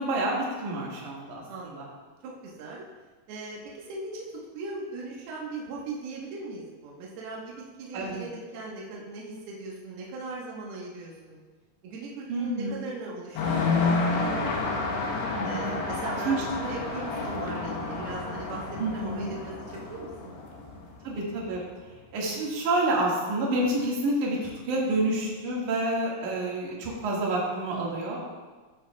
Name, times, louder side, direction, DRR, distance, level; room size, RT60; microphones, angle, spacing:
voice 1, 0.0-1.9 7.9-8.3 12.3-12.8 15.3-15.7 16.3-16.4 18.8-19.3 21.0-21.6 22.1-28.2, right 2 dB, 55° right, -4 dB, 2.9 m, -28 dB
voice 2, 1.5-1.8 2.2-2.8 3.3-4.3 4.5-11.4 11.8-14.8 15.4-20.1, right 3 dB, 75° right, -3 dB, 3.1 m, -39 dB
sound 1, 13.4-21.6, left 3 dB, 85° left, 3.3 m, -30 dB
13.5 x 9.1 x 2.3 m, 1.3 s
omnidirectional pair, 4.7 m